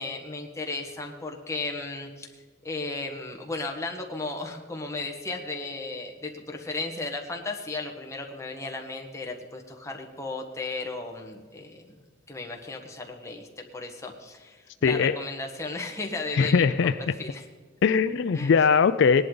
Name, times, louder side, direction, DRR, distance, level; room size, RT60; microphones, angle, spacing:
voice 1, 0.0-2.3 2.6-11.9 12.3-16.9 17.2-17.4 18.3-18.5, left 3 dB, 15° left, 1 dB, 1.4 m, -35 dB
voice 2, 14.8-15.2 16.3-16.9 17.8-19.2, left 5 dB, 60° left, 12 dB, 0.4 m, -20 dB
18.0 x 11.0 x 3.9 m, 1.5 s
head